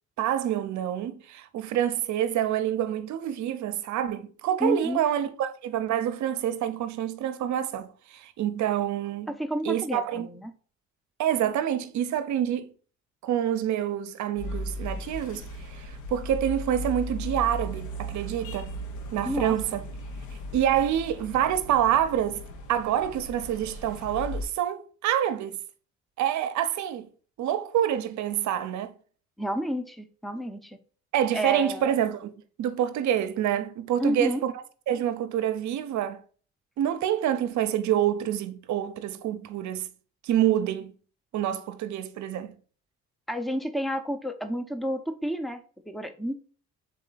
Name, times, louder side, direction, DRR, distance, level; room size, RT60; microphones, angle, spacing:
voice 1, 0.2-9.3 9.6-10.3 11.2-12.7 13.2-18.7 19.1-19.8 20.5-22.4 22.7-25.6 26.2-27.1 27.4-28.9 31.1-34.5 34.9-36.2 36.8-39.9 40.2-40.9 41.3-42.5, right 10 dB, 70° right, 0.6 m, -27 dB
voice 2, 4.6-5.0 9.3-10.5 19.2-19.8 29.4-30.8 31.3-31.9 34.0-34.4 43.3-45.6 45.9-46.4, equal, ahead, 0.5 m, -30 dB
sound 1, 14.4-24.5, equal, 75° left, 0.9 m, -37 dB
4.0 x 3.2 x 3.9 m
cardioid pair, 90°, 30 cm